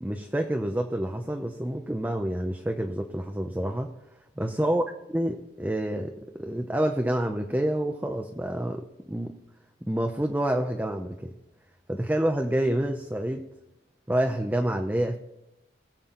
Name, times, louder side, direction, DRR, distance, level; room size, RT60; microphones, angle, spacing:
voice 1, 0.0-3.9 4.4-4.8 5.1-9.3 9.8-11.3 11.9-13.5 14.1-15.2, right 1 dB, 10° right, 4 dB, 0.6 m, -28 dB
21.0 x 7.5 x 3.8 m, 0.94 s
head